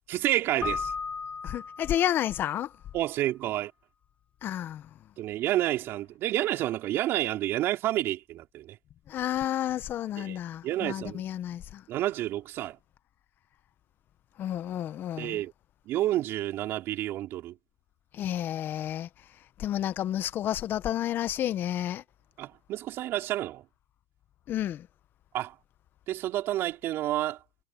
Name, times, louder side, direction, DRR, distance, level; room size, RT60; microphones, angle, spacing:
voice 1, 0.1-0.9 2.9-3.7 5.2-8.8 10.2-10.4 10.6-11.2 11.9-12.8 15.2-15.5 15.9-17.5 22.4-23.6 25.3-25.5 26.1-27.4, right 14 dB, 55° right, 4.5 m, -29 dB
Keyboard (musical), 0.6-2.4, left 5 dB, 25° left, 5.0 m, -35 dB
voice 2, 1.4-2.7 4.4-4.9 9.1-11.8 14.4-15.4 18.1-19.1 19.6-22.0 24.5-24.9, left 11 dB, 45° left, 1.2 m, -31 dB
supercardioid pair, 100°, 5 cm